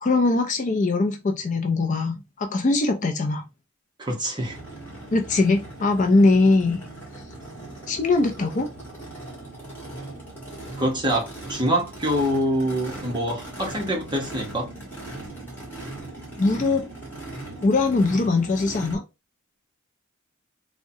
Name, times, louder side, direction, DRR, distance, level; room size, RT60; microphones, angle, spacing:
voice 1, 0.0-3.4 5.1-6.8 7.9-8.7 16.4-16.9 17.6-19.0, left 3 dB, 35° left, 0.4 m, -21 dB
voice 2, 4.0-4.6 10.8-14.7, equal, 20° right, 0.8 m, -25 dB
Race car auto racing / Idling / Accelerating revving vroom, 4.4-18.9, right 2 dB, 10° left, 1.3 m, -39 dB
3.5 x 2.1 x 2.6 m
head